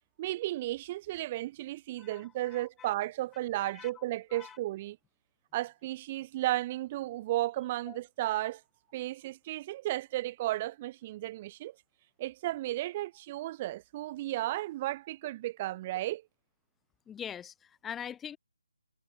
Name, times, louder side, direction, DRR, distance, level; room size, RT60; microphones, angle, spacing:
voice 1, 0.2-5.0 5.5-8.6 8.9-11.7 12.2-16.2, right 16 dB, 25° right, 1.3 m, -34 dB
voice 2, 2.0-3.0 3.6-3.9 4.3-4.6 7.9-8.0 17.1-18.4, left 8 dB, 10° left, 2.0 m, -43 dB
figure-of-eight pair, 150°, 0 cm